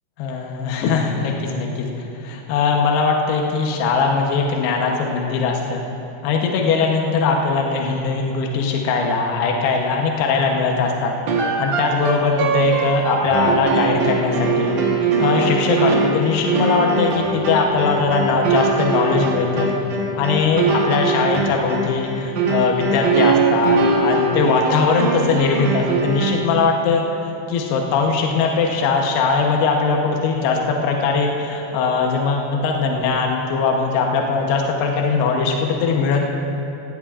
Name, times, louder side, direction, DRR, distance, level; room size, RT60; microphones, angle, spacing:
voice 1, 0.2-1.9 2.2-5.8 6.2-11.1 11.6-14.8 15.2-19.7 20.2-36.3, left 4 dB, 75° left, 1 dB, 2.9 m, -20 dB
sound 1, 11.3-26.6, right 3 dB, 85° right, 1.5 m, -21 dB
17.0 x 16.5 x 2.5 m, 2.8 s
omnidirectional pair, 5.2 m